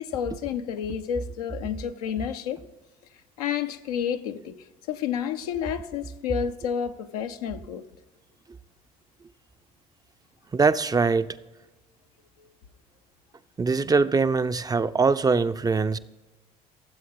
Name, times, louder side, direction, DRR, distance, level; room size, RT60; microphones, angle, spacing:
voice 1, 0.0-2.6 3.4-7.8 12.4-12.5, left 8 dB, 80° left, 0.6 m, -30 dB
voice 2, 10.5-11.3 13.6-16.0, right 4 dB, 20° right, 0.5 m, -22 dB
13.5 x 7.6 x 3.9 m
hypercardioid pair, 60°, 19 cm